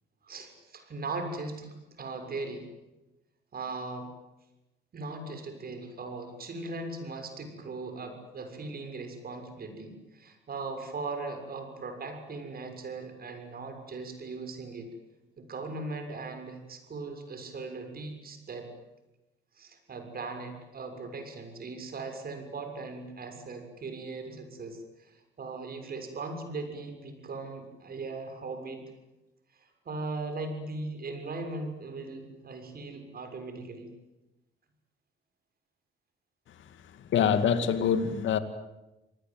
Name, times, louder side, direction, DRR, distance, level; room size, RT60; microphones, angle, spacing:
voice 1, 0.2-2.6 3.5-4.1 4.9-14.9 15.4-18.7 19.6-28.8 29.5-33.9, right 3 dB, 50° right, 6 dB, 6.6 m, -39 dB
voice 2, 37.1-38.4, left 7 dB, 75° left, 10 dB, 2.3 m, -24 dB
27.5 x 19.5 x 9.4 m, 1.0 s
cardioid pair, 90°, 20 cm